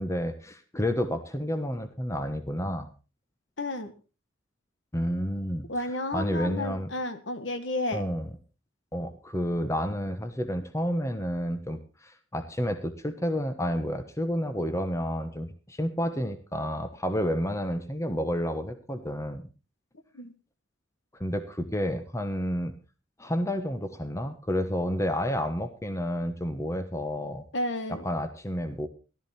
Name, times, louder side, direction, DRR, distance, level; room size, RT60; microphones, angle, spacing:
voice 1, 0.0-2.9 4.9-5.7 6.1-6.9 7.9-8.3 8.9-19.4 21.2-22.7 23.2-27.4 27.9-28.9, equal, 15° left, 9 dB, 1.1 m, -30 dB
voice 2, 3.6-3.9 5.7-8.0 20.1-20.3 27.5-28.0, left 1 dB, 65° left, 10 dB, 1.5 m, -32 dB
14.0 x 13.0 x 4.2 m, 0.32 s
head